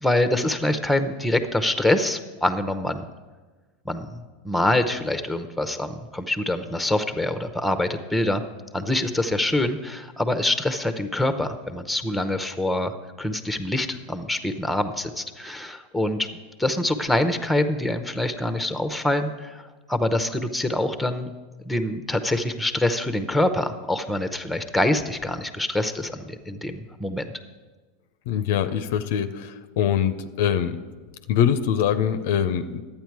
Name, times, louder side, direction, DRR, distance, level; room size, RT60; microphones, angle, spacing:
voice 1, 0.0-3.0 3.8-8.4 8.7-16.3 16.6-19.6 19.9-21.3 21.6-27.3, left 1 dB, 5° left, 9 dB, 0.8 m, -25 dB
voice 2, 28.3-30.7 31.3-32.8, left 9 dB, 65° left, 11 dB, 0.5 m, -23 dB
11.5 x 8.7 x 4.7 m, 1.3 s
hypercardioid pair, 90°, 0 cm